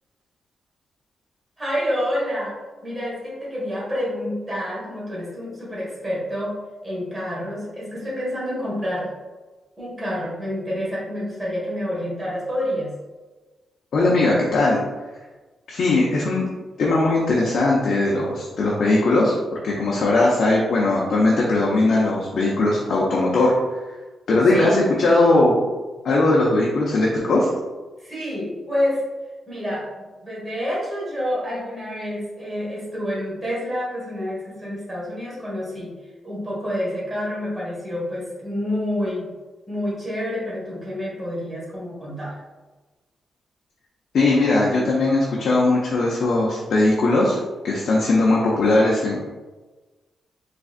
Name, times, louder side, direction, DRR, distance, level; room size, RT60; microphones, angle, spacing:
voice 1, 1.6-2.6 2.8-9.1 9.8-12.9 24.5-24.8 28.0-29.0 29.5-35.9 36.2-39.3 39.7-42.4, equal, 15° right, -6 dB, 1.5 m, -28 dB
voice 2, 13.9-14.8 15.7-16.4 16.8-19.3 19.6-23.5 24.3-25.6 26.0-27.5 44.1-47.4 47.6-49.2, left 2 dB, 60° left, -4 dB, 0.6 m, -19 dB
3.8 x 3.3 x 2.4 m, 1.2 s
wide cardioid pair, 130°, 0 cm